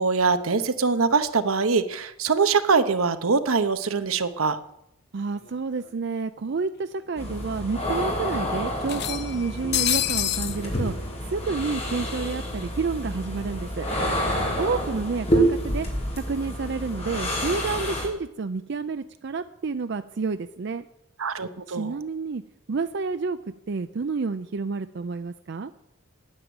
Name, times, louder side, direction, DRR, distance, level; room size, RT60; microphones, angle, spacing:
voice 1, 0.0-4.6 21.2-21.9, right 4 dB, 85° right, 10 dB, 1.0 m, -23 dB
voice 2, 5.1-10.9 11.2-13.9 14.6-15.9 16.2-20.8 21.7-22.4 22.7-23.4 23.7-25.7, right 4 dB, 55° right, 10 dB, 0.4 m, -29 dB
sound 1, 5.5-5.6 5.8-5.9 7.0-7.1 7.5-7.6 8.9-10.6, left 12 dB, 50° left, 0.6 m, -27 dB
sound 2, 7.2-18.1, equal, 30° left, 3.0 m, -28 dB
9.7 x 9.3 x 8.7 m, 0.80 s
head